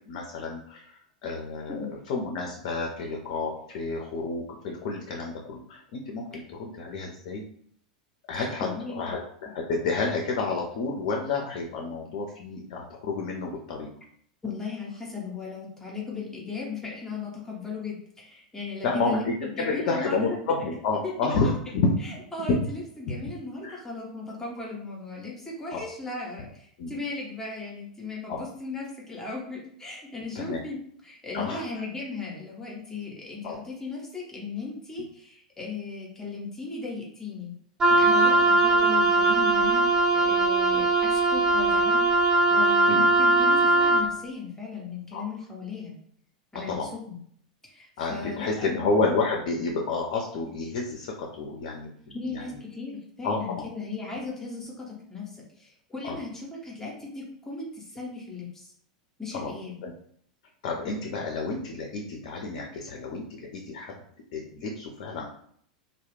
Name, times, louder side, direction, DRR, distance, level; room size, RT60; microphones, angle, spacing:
voice 1, 0.1-0.9 1.2-7.4 8.3-8.7 8.9-13.9 18.8-21.9 23.6-23.8 25.7-25.8 26.8-26.9 28.3-28.4 30.4-30.6 31.3-31.6 33.4-33.6 37.9-38.0 42.9-43.1 45.1-45.2 46.7-46.9 48.0-52.5 53.2-53.7 56.0-56.2 59.3-59.5 59.8-59.9 60.6-63.9 64.3-65.2, left 3 dB, 50° left, 1 dB, 0.4 m, -30 dB
voice 2, 8.3-9.1 14.4-20.4 21.0-21.1 22.0-37.5 37.9-39.9 40.1-45.9 46.5-47.2 47.6-49.0 52.1-58.7 59.2-59.8, left 4 dB, 10° left, -3 dB, 0.7 m, -37 dB
Wind instrument woodwind instrument, 37.8-44.1, right 2 dB, 20° right, 0.4 m, -20 dB
2.2 x 2.0 x 3.3 m, 0.64 s
figure-of-eight pair, 90°, 4 cm